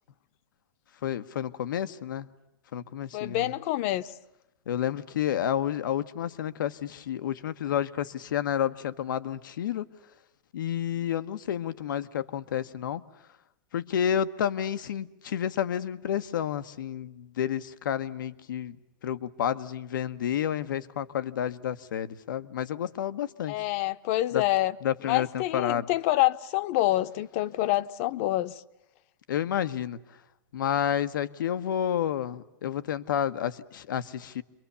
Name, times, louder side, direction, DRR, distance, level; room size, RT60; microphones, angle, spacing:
voice 1, 1.0-2.3 2.7-3.5 4.7-9.8 10.5-13.0 13.7-18.8 19.0-23.6 24.3-24.4 24.8-25.9 29.3-30.0 30.5-34.4, left 10 dB, 90° left, 1.2 m, -30 dB
voice 2, 3.1-4.1 23.5-24.8 25.0-28.6, left 16 dB, 45° left, 1.0 m, -27 dB
29.5 x 23.0 x 7.0 m
supercardioid pair, 160°, 10 cm